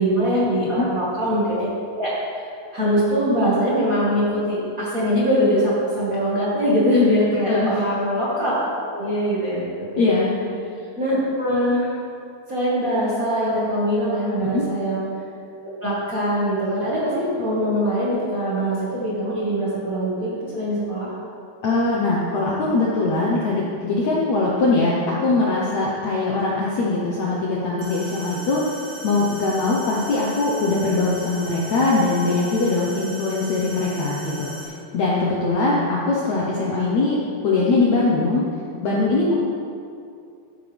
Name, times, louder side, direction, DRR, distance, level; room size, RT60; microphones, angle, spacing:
voice 1, 0.0-1.7 1.9-2.1 2.3-2.5 2.7-8.5 8.9-9.6 9.9-10.1 11.0-11.9 12.5-15.1 15.6-21.1, equal, 40° right, -8 dB, 1.2 m, -22 dB
voice 2, 7.5-7.8 10.0-10.3 14.4-14.7 21.6-28.8 29.0-37.2 37.4-38.4 38.8-39.4, left 3 dB, 70° left, -5 dB, 1.7 m, -21 dB
sound 1, 27.8-34.6, right 1 dB, 60° right, 3.3 m, -38 dB
13.5 x 9.3 x 3.5 m, 2.4 s
omnidirectional pair, 4.7 m